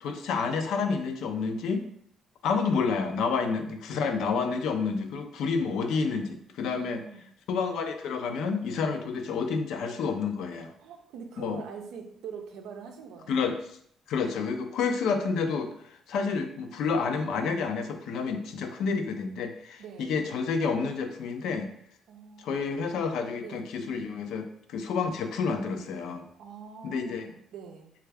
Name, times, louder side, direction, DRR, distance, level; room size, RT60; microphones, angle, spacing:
voice 1, 0.0-1.8 2.4-7.0 7.5-10.7 11.4-11.6 13.3-13.6 14.1-21.7 22.4-26.3 26.8-27.3, left 5 dB, 85° left, 6 dB, 0.4 m, -29 dB
voice 2, 6.7-7.2 10.8-13.5 19.8-20.1 22.1-22.7 23.4-23.7 26.4-27.9, right 6 dB, 90° right, 4 dB, 0.5 m, -44 dB
3.2 x 2.3 x 3.3 m, 0.67 s
cardioid pair, 90°, 0 cm